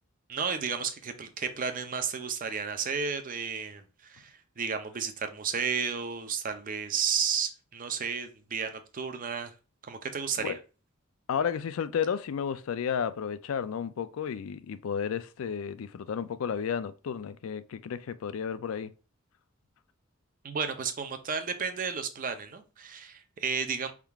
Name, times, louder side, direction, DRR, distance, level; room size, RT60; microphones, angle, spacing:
voice 1, 0.3-9.5 9.9-10.6 20.4-23.9, right 6 dB, 40° right, 0.6 m, -32 dB
voice 2, 11.3-18.9, left 7 dB, 80° left, 0.4 m, -32 dB
4.5 x 3.6 x 2.3 m
head